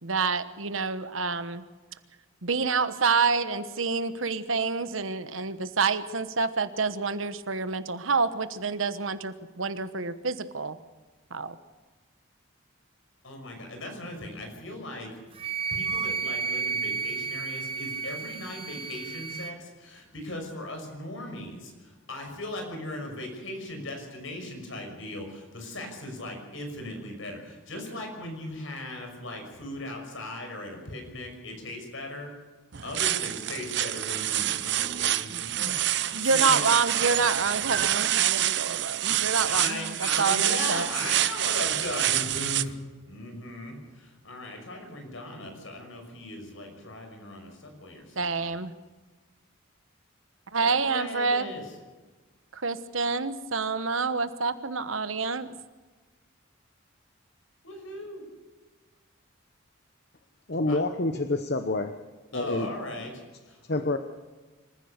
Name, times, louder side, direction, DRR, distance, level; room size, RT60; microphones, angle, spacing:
voice 1, 0.0-1.6 2.4-10.8 11.3-11.6 35.6-35.8 36.1-40.9 48.2-48.7 50.5-51.5 52.5-55.5, right 4 dB, 80° right, 12 dB, 1.2 m, -28 dB
voice 2, 13.2-15.4 15.7-32.3 32.8-36.7 39.5-42.7 43.0-48.5 50.6-51.6 57.6-58.2 60.7-60.8 62.3-63.6, left 1 dB, 75° left, 3 dB, 6.1 m, -38 dB
Wind instrument woodwind instrument, 15.4-19.5, right 5 dB, 25° right, 1.0 m, -32 dB
sound 1, 32.7-42.6, right 13 dB, 55° right, 0.6 m, -27 dB
voice 3, 60.5-61.9 62.3-62.7 63.7-64.0, left 2 dB, 50° left, 7 dB, 1.0 m, -27 dB
26.0 x 15.0 x 6.7 m, 1.3 s
head